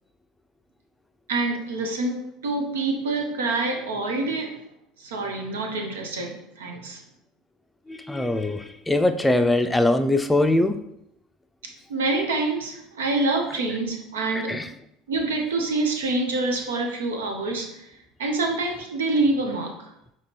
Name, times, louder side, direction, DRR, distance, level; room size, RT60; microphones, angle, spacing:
voice 1, 1.3-4.6 5.0-7.0 11.6-14.6 15.1-19.9, right 2 dB, 90° right, 3 dB, 0.7 m, -26 dB
voice 2, 7.9-10.8 14.5-14.7, left 2 dB, 10° left, 7 dB, 0.4 m, -22 dB
5.1 x 3.0 x 2.9 m, 0.80 s
hypercardioid pair, 80°, 0 cm